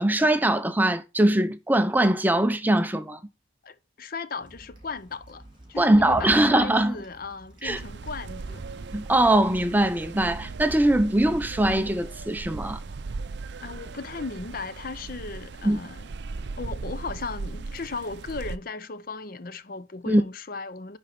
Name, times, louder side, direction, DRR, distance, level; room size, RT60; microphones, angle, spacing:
voice 1, 0.0-3.2 5.8-7.0 7.6-7.8 8.9-12.8 15.6-15.8 20.1-20.2, right 1 dB, 10° right, 0.5 m, -22 dB
voice 2, 3.6-5.4 5.7-8.7 13.6-16.1 16.6-21.0, left 4 dB, 50° left, 0.6 m, -36 dB
sound 1, 4.4-11.7, right 1 dB, 25° right, 5.1 m, -46 dB
sound 2, 7.7-18.6, right 3 dB, 60° right, 0.5 m, -38 dB
10.5 x 4.4 x 5.2 m
head